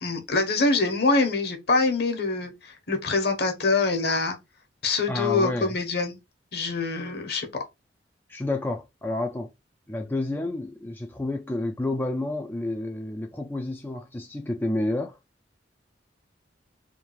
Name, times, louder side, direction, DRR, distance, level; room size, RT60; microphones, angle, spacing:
voice 1, 0.0-4.4 4.8-6.2 6.5-7.5, left 3 dB, 60° left, 1.2 m, -24 dB
voice 2, 5.1-5.8 8.3-9.5 9.9-15.2, left 2 dB, 10° left, 0.4 m, -30 dB
3.6 x 2.5 x 4.6 m
head